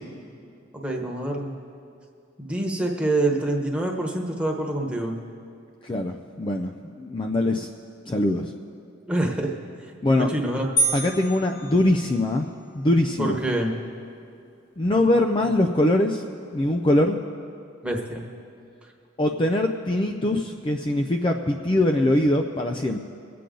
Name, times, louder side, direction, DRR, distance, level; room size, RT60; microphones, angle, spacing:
voice 1, 0.7-1.5 2.4-5.2 9.1-9.5 10.2-10.7 13.2-13.7 17.8-18.2, right 1 dB, 5° right, 0 dB, 1.2 m, -26 dB
voice 2, 5.8-7.7 8.1-8.5 10.0-10.3 10.9-12.5 12.7-13.4 14.8-16.2 16.5-17.2 19.2-23.0, left 1 dB, 25° left, 3 dB, 0.4 m, -22 dB
sound 1, 10.8-12.5, right 3 dB, 60° left, 1.3 m, -28 dB
23.5 x 8.4 x 3.9 m, 2.5 s
head